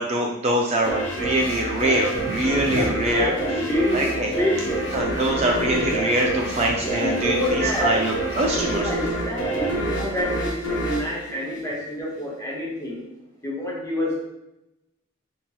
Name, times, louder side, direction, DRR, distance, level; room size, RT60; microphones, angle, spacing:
voice 1, 0.0-3.4 3.9-4.3 4.9-8.8, right 1 dB, 35° right, 0 dB, 0.3 m, -23 dB
sound 1, 0.8-12.1, right 2 dB, 65° left, 0.5 m, -28 dB
voice 2, 2.7-5.0 6.8-8.2 8.7-13.1 13.4-14.3, left 1 dB, 15° left, -4 dB, 0.7 m, -27 dB
2.8 x 2.8 x 2.2 m, 0.91 s
head